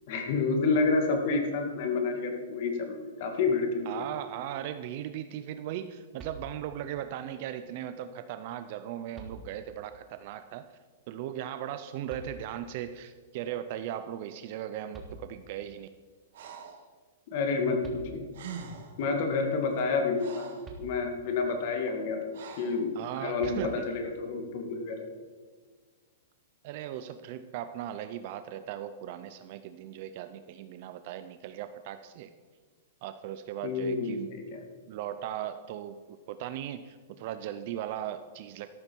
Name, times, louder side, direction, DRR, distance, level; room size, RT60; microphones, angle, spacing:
voice 1, 0.1-3.9 17.3-18.3 19.0-20.5 20.8-22.2 22.6-22.9 23.2-25.1 33.6-34.6, left 4 dB, 40° left, 4 dB, 2.0 m, -29 dB
voice 2, 3.9-10.7 11.1-15.9 23.0-23.9 26.6-32.3 33.0-34.3 34.9-36.0 36.3-38.7, right 11 dB, 35° right, 10 dB, 0.5 m, -38 dB
sound 1, 6.2-6.9 8.4-8.5 9.1-9.9 12.1-12.8 14.6-14.7 14.9-15.8 17.5-17.6 17.8-18.6 20.6-21.5 23.4-24.2, right 2 dB, 10° right, 1.4 m, -47 dB
Breathing, 16.3-16.9 18.0-18.1 18.3-19.0 19.7-20.7 22.3-22.8, right 6 dB, 55° right, 2.0 m, -44 dB
13.5 x 12.5 x 4.6 m, 1.5 s
supercardioid pair, 175°, 0 cm